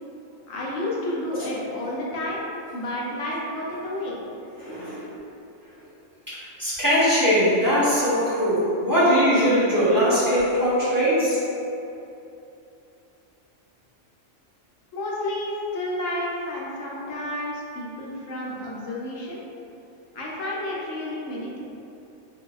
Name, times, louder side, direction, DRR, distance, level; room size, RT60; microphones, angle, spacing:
voice 1, 0.5-2.4 2.7-4.2 14.9-19.4 20.1-21.6, left 1 dB, 85° left, -4 dB, 1.0 m, -30 dB
voice 2, 4.6-5.1 6.3-11.4, equal, 20° right, -12 dB, 0.8 m, -21 dB
3.5 x 2.6 x 2.3 m, 2.8 s
omnidirectional pair, 1.3 m